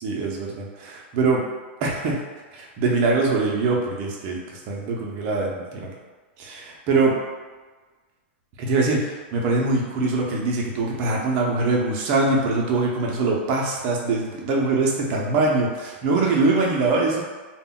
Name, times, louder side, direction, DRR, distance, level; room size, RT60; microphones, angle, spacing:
voice 1, 0.0-1.4 1.8-2.2 2.5-5.9 6.4-7.2 8.6-17.2, right 3 dB, 30° right, -1 dB, 0.4 m, -23 dB
2.1 x 2.1 x 3.6 m, 1.3 s
supercardioid pair, 175°, 6 cm